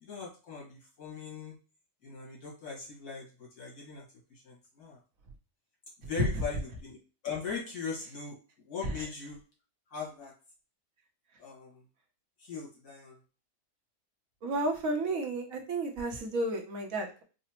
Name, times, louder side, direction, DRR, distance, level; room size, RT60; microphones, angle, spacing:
voice 1, 0.0-1.5 2.0-4.0 4.3-5.0 6.0-7.0 7.2-8.4 8.7-9.4 9.9-10.3 11.4-11.8 12.4-13.2, left 5 dB, 80° left, -4 dB, 2.1 m, -40 dB
voice 2, 14.4-17.2, right 2 dB, 65° right, 2 dB, 1.2 m, -32 dB
4.9 x 2.1 x 2.9 m, 0.34 s
omnidirectional pair, 1.6 m